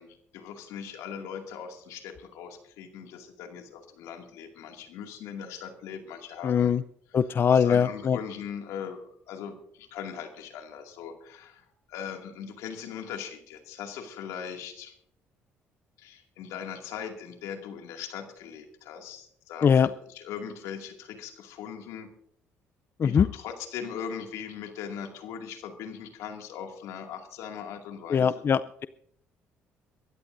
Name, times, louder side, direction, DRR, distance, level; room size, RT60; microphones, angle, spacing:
voice 1, 0.0-6.7 7.1-14.9 16.0-22.1 23.0-28.4, left 7 dB, 80° left, 3 dB, 2.3 m, -40 dB
voice 2, 6.4-6.8 7.1-8.2 19.6-19.9 23.0-23.3 28.1-28.9, left 7 dB, 45° left, 15 dB, 0.4 m, -22 dB
23.0 x 13.5 x 2.6 m, 0.67 s
supercardioid pair, 65°, 5 cm